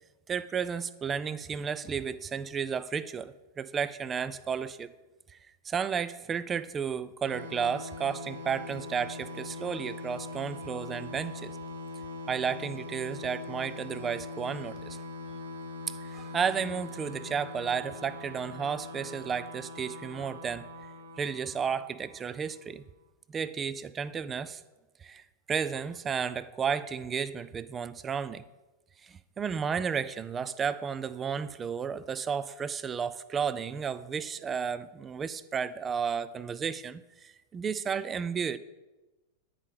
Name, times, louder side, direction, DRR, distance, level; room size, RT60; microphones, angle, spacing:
voice 1, 0.3-4.9 5.7-11.5 12.3-15.0 16.1-20.7 21.2-22.8 23.3-24.6 25.0-25.2 25.5-28.4 29.0-38.6, right 6 dB, 20° right, 15 dB, 0.3 m, -33 dB
sound 1, 7.2-22.6, left 2 dB, 85° right, 0.8 m, -42 dB
9.6 x 5.2 x 3.5 m, 1.1 s
figure-of-eight pair, 90°, 0 cm